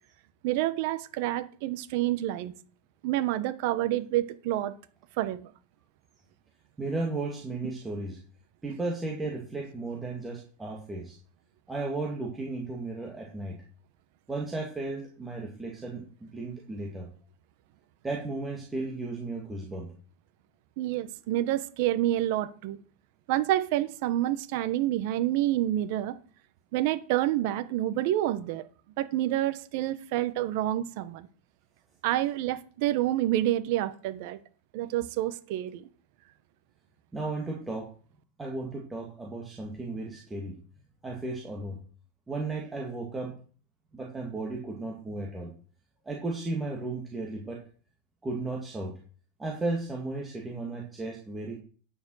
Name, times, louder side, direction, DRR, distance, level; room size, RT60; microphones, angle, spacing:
voice 1, 0.4-2.5 3.0-4.7 5.2-5.5 20.8-22.8 23.3-26.2 26.7-28.7 29.0-31.3 32.0-34.4 34.7-35.9, right 14 dB, 55° right, 13 dB, 1.0 m, -28 dB
voice 2, 6.8-8.2 8.6-11.2 11.7-13.6 14.3-17.1 18.0-19.9 37.1-37.9 38.4-40.5 41.0-41.8 42.3-43.3 43.9-45.5 46.0-47.6 48.2-48.9 49.4-51.6, right 2 dB, 10° right, -2 dB, 2.0 m, -34 dB
9.4 x 7.0 x 6.3 m, 0.42 s
supercardioid pair, 145°, 0 cm